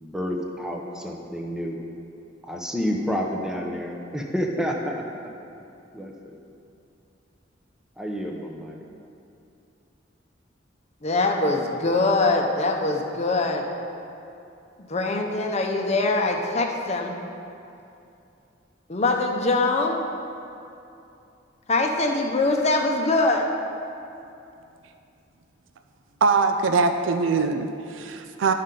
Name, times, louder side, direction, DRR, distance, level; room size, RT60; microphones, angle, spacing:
voice 1, 0.0-1.8 2.4-5.3 5.9-6.1 8.0-8.9, equal, 5° right, 0 dB, 0.7 m, -29 dB
voice 2, 11.0-13.6 14.8-17.1 18.9-20.0 21.7-23.5, left 2 dB, 35° left, 2 dB, 0.7 m, -23 dB
voice 3, 26.2-28.5, right 4 dB, 80° right, 7 dB, 0.4 m, -22 dB
12.0 x 5.6 x 3.8 m, 2.7 s
head